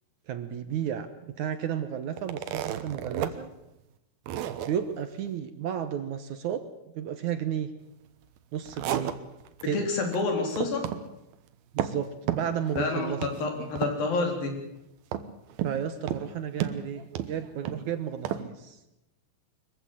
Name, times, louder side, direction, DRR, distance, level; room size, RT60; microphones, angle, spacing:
voice 1, 0.3-3.5 4.6-6.6 6.9-7.7 8.5-9.1 9.7-9.9 11.7-13.2 15.6-17.0 17.3-18.8, right 9 dB, 65° right, 10 dB, 2.3 m, -32 dB
sound 1, 2.2-3.3 3.7-3.8 4.3-4.7 8.4-9.6 10.0-10.2 10.5-11.0 11.3-12.0 12.3-12.9 13.2-13.4 13.8-14.2 15.1-15.8 16.1-16.3 16.6-17.8 18.2-18.4, right 11 dB, 80° right, 3.0 m, -32 dB
voice 2, 9.7-10.8 12.8-14.6, left 3 dB, 70° left, 3 dB, 5.6 m, -28 dB
23.0 x 15.0 x 9.0 m, 0.90 s
omnidirectional pair, 4.2 m